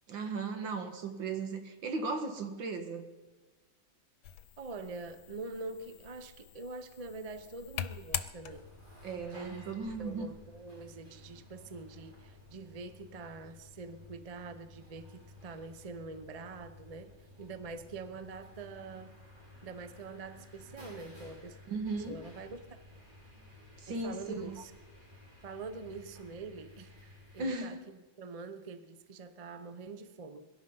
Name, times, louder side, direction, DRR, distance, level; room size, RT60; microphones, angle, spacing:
voice 1, 0.1-3.1 9.0-10.3 21.7-22.2 23.8-24.6 27.4-27.8, right 3 dB, 75° right, 5 dB, 2.3 m, -37 dB
sound 1, 4.2-8.9, left 10 dB, 85° left, 1.5 m, -43 dB
voice 2, 4.6-8.7 9.3-9.7 10.0-19.2 19.6-21.6 22.1-22.8 23.9-24.7 25.4-30.5, right 3 dB, 45° right, 10 dB, 0.5 m, -45 dB
sound 2, 8.5-27.5, left 2 dB, 25° right, 5.3 m, -55 dB
22.5 x 11.5 x 5.5 m, 1.2 s
omnidirectional pair, 2.1 m